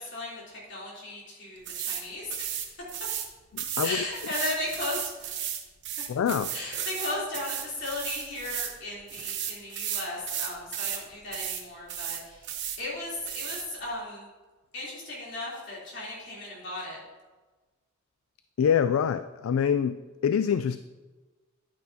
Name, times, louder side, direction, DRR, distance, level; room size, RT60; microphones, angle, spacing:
voice 1, 0.0-2.7 3.8-5.3 6.0-6.1 6.5-14.3 14.7-17.0, left 2 dB, 60° left, -5 dB, 3.4 m, -36 dB
sound 1, 1.7-2.0 2.3-3.3 3.6-8.8 9.1-11.0 11.3-11.6 11.9-12.8 13.3-13.6, right 10 dB, 60° right, 1.0 m, -34 dB
voice 2, 3.5-4.0 6.1-6.5 18.6-20.0 20.2-20.8, left 8 dB, 75° left, 12 dB, 0.3 m, -25 dB
10.5 x 9.6 x 2.8 m, 1.2 s
head